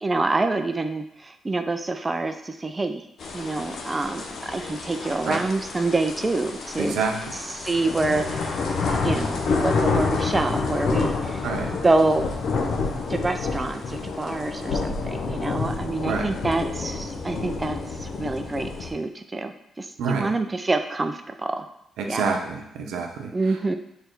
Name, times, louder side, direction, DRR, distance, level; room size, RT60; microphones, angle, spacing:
voice 1, 0.0-3.0 3.3-7.0 7.5-8.6 8.9-11.5 11.8-12.3 13.1-21.7 22.1-22.2 23.3-23.7, right 2 dB, 25° right, 7 dB, 0.5 m, -26 dB
sound 1, 3.2-18.9, left 4 dB, 65° left, 0.9 m, -28 dB
voice 2, 6.8-7.3 11.4-11.8 16.1-16.3 20.0-20.3 22.0-23.3, right 5 dB, 85° right, 3 dB, 0.8 m, -27 dB
6.6 x 3.4 x 4.6 m, 0.78 s
cardioid pair, 80°, 0 cm